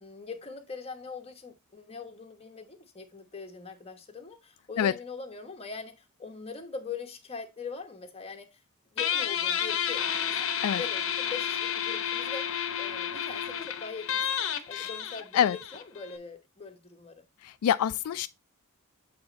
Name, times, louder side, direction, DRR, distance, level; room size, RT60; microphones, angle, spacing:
voice 1, 0.0-8.6 8.9-10.1 10.8-14.4 14.7-17.3, left 5 dB, 25° left, 1.1 m, -42 dB
Guitar, 9.0-16.2, left 9 dB, 60° left, 0.8 m, -31 dB
voice 2, 17.4-18.3, left 9 dB, 80° left, 0.3 m, -26 dB
7.9 x 3.4 x 4.0 m
head